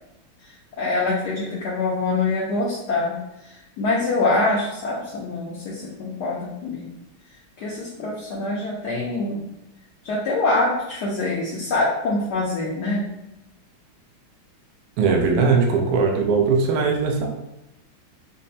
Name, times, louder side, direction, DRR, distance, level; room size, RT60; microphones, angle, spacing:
voice 1, 0.4-6.9 7.6-9.4 10.0-13.1, left 2 dB, 70° left, -4 dB, 1.0 m, -25 dB
voice 2, 15.0-17.3, right 4 dB, 75° right, 1 dB, 0.9 m, -19 dB
5.3 x 2.1 x 2.7 m, 0.92 s
omnidirectional pair, 2.3 m